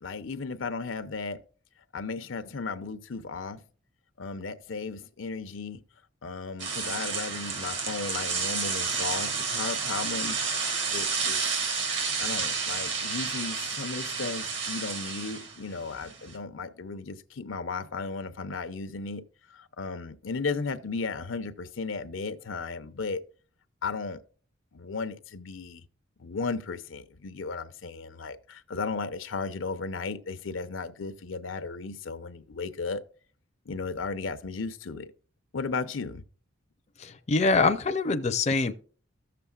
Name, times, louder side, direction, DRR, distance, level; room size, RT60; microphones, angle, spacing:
voice 1, 0.0-1.4 1.9-3.6 4.2-5.8 6.2-10.4 10.8-11.4 12.2-19.2 19.5-23.2 23.8-24.2 24.7-25.8 26.2-33.0 33.7-35.1 35.5-36.3, left 4 dB, 85° left, 0.7 m, -35 dB
sound 1, 6.6-16.3, right 5 dB, 65° right, 2.0 m, -30 dB
voice 2, 37.0-38.7, left 3 dB, 35° left, 0.5 m, -24 dB
14.5 x 6.8 x 2.3 m
head